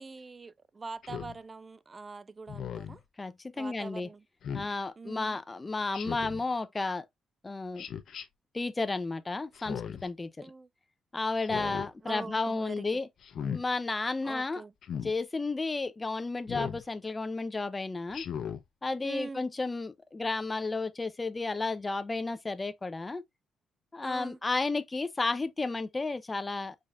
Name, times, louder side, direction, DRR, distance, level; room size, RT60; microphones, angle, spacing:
voice 1, 0.0-3.0 3.5-4.2 5.0-5.4 10.4-10.7 11.5-13.0 14.2-14.7 19.0-19.5 24.0-24.4, right 4 dB, 30° right, 0.5 m, -43 dB
Speech synthesizer, 1.0-1.4 2.5-3.0 4.4-4.7 5.9-6.4 7.8-8.2 9.5-10.1 11.4-11.9 13.2-13.6 14.8-15.1 16.5-16.8 18.1-18.6, left 8 dB, 65° left, 0.9 m, -37 dB
voice 2, 3.2-4.1 4.5-7.0 7.4-7.9 8.5-10.5 11.1-13.1 13.5-14.6 15.0-18.3 18.8-23.2 23.9-26.8, left 3 dB, 20° left, 0.7 m, -32 dB
5.3 x 3.9 x 2.5 m
cardioid pair, 90°, 0 cm